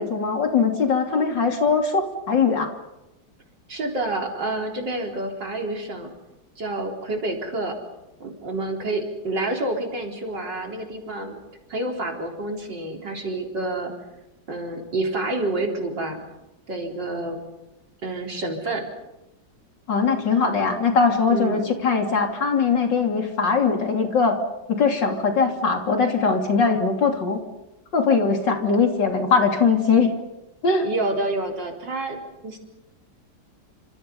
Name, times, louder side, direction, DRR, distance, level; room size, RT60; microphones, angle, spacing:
voice 1, 0.0-2.7 19.9-24.4 24.7-27.4 27.9-30.1 30.6-30.9, left 5 dB, 65° left, 3 dB, 3.7 m, -21 dB
voice 2, 3.7-6.1 6.6-7.8 8.2-11.4 11.7-13.9 14.5-16.2 16.7-17.4 18.0-18.9 21.3-21.6 30.8-32.6, right 2 dB, 65° right, 1 dB, 4.7 m, -28 dB
29.0 x 27.0 x 5.5 m, 0.95 s
omnidirectional pair, 2.1 m